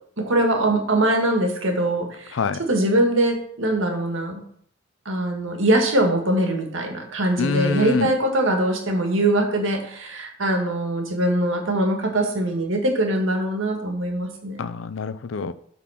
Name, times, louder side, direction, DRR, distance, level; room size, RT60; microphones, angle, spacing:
voice 1, 0.2-2.4 2.7-4.4 5.0-14.6, right 1 dB, 80° right, 1.8 m, -22 dB
voice 2, 7.4-8.1 14.6-15.5, left 4 dB, 75° left, 0.5 m, -25 dB
8.2 x 4.1 x 5.7 m
head